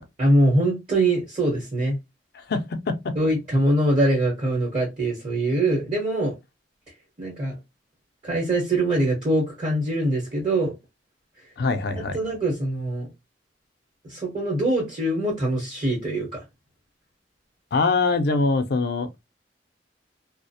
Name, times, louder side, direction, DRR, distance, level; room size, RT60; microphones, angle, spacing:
voice 1, 0.2-2.0 3.2-6.3 7.2-7.5 8.2-10.8 12.1-13.1 14.0-16.3, right 1 dB, 35° right, 0.9 m, -23 dB
voice 2, 2.3-3.2 11.6-12.2 17.7-19.1, left 3 dB, 60° left, 0.4 m, -23 dB
2.3 x 2.0 x 2.6 m
head